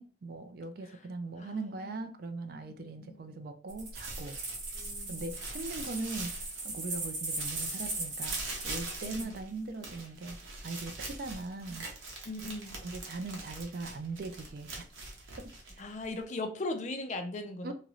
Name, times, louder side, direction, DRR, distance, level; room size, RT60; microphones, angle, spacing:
voice 1, 0.0-4.4 5.1-8.4 8.6-11.9 12.8-14.7 15.4-15.8 17.6-17.7, right 3 dB, 50° right, 0.3 m, -40 dB
voice 2, 1.4-2.1 2.7-3.5 4.8-5.2 9.0-9.4 12.3-12.8 15.8-17.7, left 2 dB, 35° left, 0.4 m, -39 dB
sound 1, 3.7-9.2, right 2 dB, 70° right, 1.1 m, -38 dB
sound 2, 3.9-6.9 7.2-16.2, right 3 dB, 90° right, 0.8 m, -43 dB
2.9 x 2.4 x 3.0 m
head